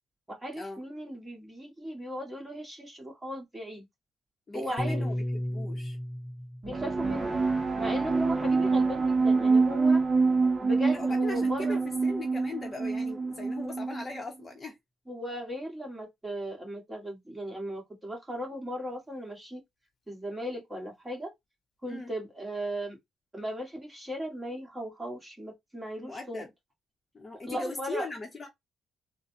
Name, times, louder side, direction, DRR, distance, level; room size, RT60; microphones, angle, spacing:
voice 1, 0.3-3.9 4.5-5.1 6.6-7.4 7.8-10.0 10.6-11.8 15.1-19.6 20.1-21.3 21.8-23.0 23.3-26.4 27.5-28.1, equal, 10° right, 1.8 m, -37 dB
voice 2, 4.5-6.0 10.9-14.8 21.9-22.1 26.0-26.5 27.1-28.5, left 2 dB, 30° left, 1.0 m, -39 dB
Piano, 4.8-9.2, equal, 55° left, 1.0 m, -36 dB
sound 1, 6.6-14.2, right 4 dB, 30° right, 0.9 m, -26 dB
3.8 x 2.3 x 2.8 m
cardioid pair, 90°, 0 cm